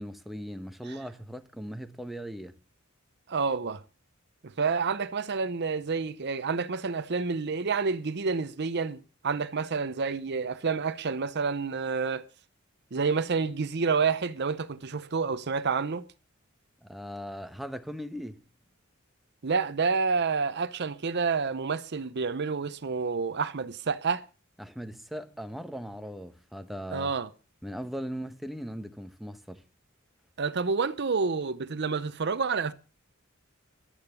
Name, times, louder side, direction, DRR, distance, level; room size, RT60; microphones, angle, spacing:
voice 1, 0.0-2.6 16.8-18.4 24.6-27.1 27.6-29.6, equal, ahead, 1.2 m, -39 dB
voice 2, 3.3-3.8 4.4-12.3 12.9-16.1 19.4-24.2 26.9-27.3 30.4-32.7, right 5 dB, 55° right, 0.7 m, -29 dB
13.5 x 11.5 x 7.0 m
head